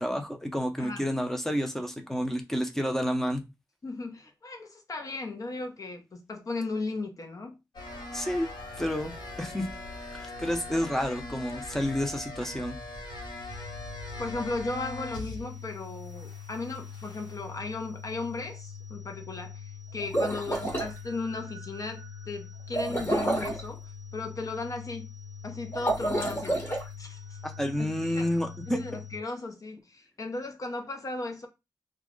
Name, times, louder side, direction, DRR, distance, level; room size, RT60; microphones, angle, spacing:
voice 1, 0.0-3.4 8.1-8.5 8.8-9.1 9.4-9.7 10.1-12.8 27.4-28.8, equal, 5° left, 0.6 m, -30 dB
voice 2, 3.8-7.6 14.2-25.1 25.4-26.6 27.0-27.4 27.8-28.3 28.7-31.5, left 3 dB, 45° left, 0.7 m, -36 dB
sound 1, 7.7-15.6 15.9-17.4, left 2 dB, 75° left, 1.0 m, -41 dB
sound 2, 13.5-29.2, left 6 dB, 70° right, 0.5 m, -44 dB
sound 3, 20.0-20.9 22.7-23.6 25.7-26.8, right 1 dB, 25° left, 1.1 m, -29 dB
2.3 x 2.1 x 3.6 m
cardioid pair, 70°, 8 cm